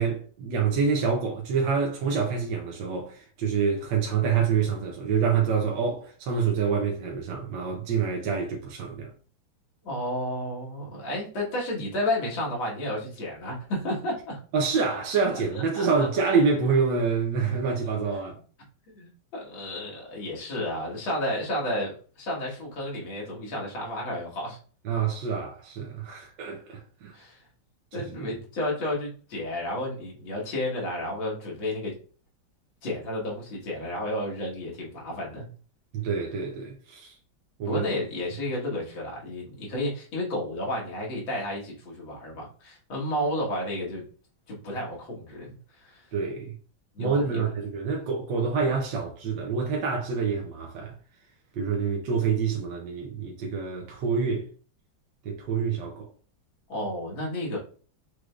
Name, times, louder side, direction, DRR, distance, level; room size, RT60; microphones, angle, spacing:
voice 1, 0.0-9.1 14.5-18.4 24.8-27.2 28.0-28.4 35.9-37.1 37.6-37.8 46.1-46.5 47.0-50.9 51.5-54.5 55.2-56.1, right 5 dB, 75° right, 1.4 m, -27 dB
voice 2, 9.8-14.4 15.5-16.1 18.9-24.6 27.1-27.4 27.9-32.0 32.8-35.5 37.7-44.0 44.5-46.0 47.0-47.4 56.7-57.6, left 1 dB, 80° left, 2.4 m, -32 dB
6.2 x 3.3 x 2.4 m
omnidirectional pair, 2.1 m